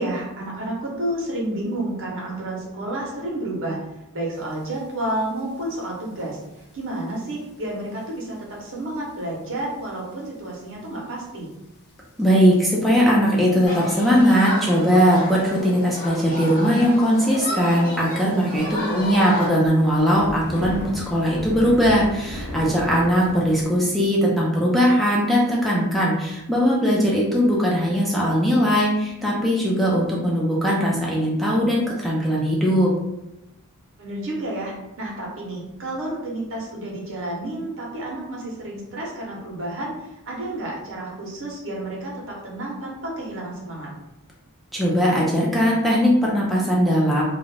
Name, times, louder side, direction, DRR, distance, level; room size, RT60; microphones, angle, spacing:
voice 1, 0.0-3.8 4.1-6.4 6.7-11.5 18.4-19.0 34.0-43.9, right 1 dB, 60° right, -3 dB, 0.8 m, -30 dB
sound 1, 5.0-5.1 5.4-5.7 6.4-6.6 7.2-7.3 7.9-8.0 8.4-8.5 8.7-8.8 9.9-10.1 10.5-10.6 11.5-11.6 12.2-12.6 13.0-13.1 13.7-14.3 15.4-15.7 16.0-16.1 16.4-16.5 16.7-16.8 17.4-17.5 17.9-18.0 18.5-23.7, equal, 80° left, 0.6 m, -35 dB
voice 2, 12.2-32.9 44.7-47.2, equal, ahead, -5 dB, 0.4 m, -19 dB
Human group actions, 13.7-19.5, left 1 dB, 40° left, 0.8 m, -32 dB
2.4 x 2.1 x 3.1 m, 0.91 s
head